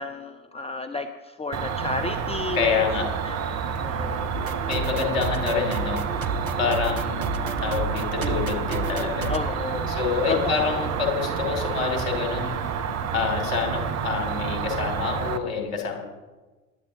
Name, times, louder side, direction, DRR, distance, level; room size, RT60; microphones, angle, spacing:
voice 1, 0.0-2.8 3.2-4.3 9.3-10.0 10.3-10.7, left 3 dB, 15° left, 7 dB, 0.7 m, -32 dB
Cricket, 1.5-15.4, right 6 dB, 40° right, 1.0 m, -29 dB
voice 2, 2.5-3.1 4.6-6.0 6.6-7.2 7.6-9.4 9.9-12.6 13.1-16.0, left 6 dB, 65° left, 2 dB, 3.0 m, -27 dB
sound 1, 4.3-9.4, right 3 dB, 85° right, 0.7 m, -32 dB
19.5 x 12.0 x 3.0 m, 1.2 s
figure-of-eight pair, 55°, 41 cm